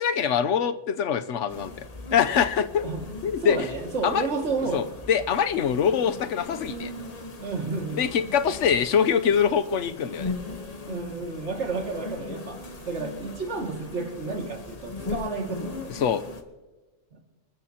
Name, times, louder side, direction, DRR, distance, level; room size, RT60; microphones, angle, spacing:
voice 1, 0.0-2.9 3.2-3.7 4.0-4.3 4.7-6.9 8.0-10.3 15.9-16.2, left 7 dB, 90° left, 11 dB, 1.1 m, -24 dB
sound 1, 1.5-16.4, left 3 dB, 35° left, 1.1 m, -39 dB
voice 2, 3.4-4.8 7.4-8.0 10.9-16.0 17.1-17.2, right 3 dB, 75° right, 2 dB, 2.4 m, -31 dB
26.0 x 13.5 x 2.9 m, 1.2 s
omnidirectional pair, 1.2 m